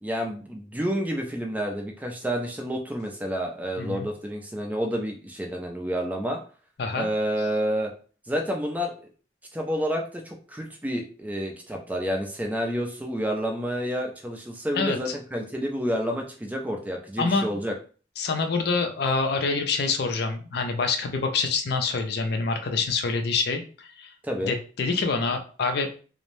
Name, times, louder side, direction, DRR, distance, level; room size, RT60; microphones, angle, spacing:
voice 1, 0.0-6.4 7.0-7.9 8.3-9.1 9.5-17.7 24.2-24.5, equal, 10° right, 2 dB, 0.3 m, -29 dB
voice 2, 3.8-4.1 6.8-7.1 14.8-15.0 17.2-17.5 18.2-24.1 24.4-25.9, left 4 dB, 55° left, 6 dB, 0.4 m, -26 dB
2.6 x 2.0 x 3.1 m, 0.39 s
head